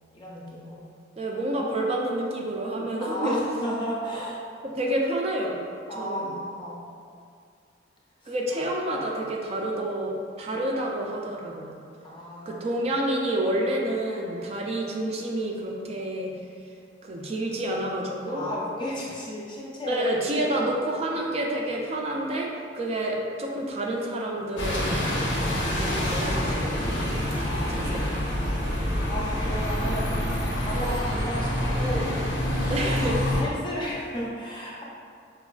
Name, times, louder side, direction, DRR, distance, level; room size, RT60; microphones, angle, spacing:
voice 1, 0.1-0.8 3.0-4.4 5.9-6.8 8.2-8.6 12.0-12.7 18.3-20.1 20.4-20.6 27.3-27.8 28.3-28.8 29.1-30.2 30.6-32.2 32.7-32.9 33.3-34.8, equal, 25° left, -6 dB, 0.5 m, -34 dB
voice 2, 1.2-3.4 4.6-5.6 5.9-6.3 8.3-11.7 12.5-16.3 17.0-18.5 19.9-25.1 25.7-27.1 27.7-28.1 32.7-33.2, right 1 dB, 35° right, -1 dB, 0.3 m, -29 dB
Bus, 24.6-33.4, equal, 90° left, 0.8 m, -27 dB
5.0 x 2.3 x 2.3 m, 2.3 s
head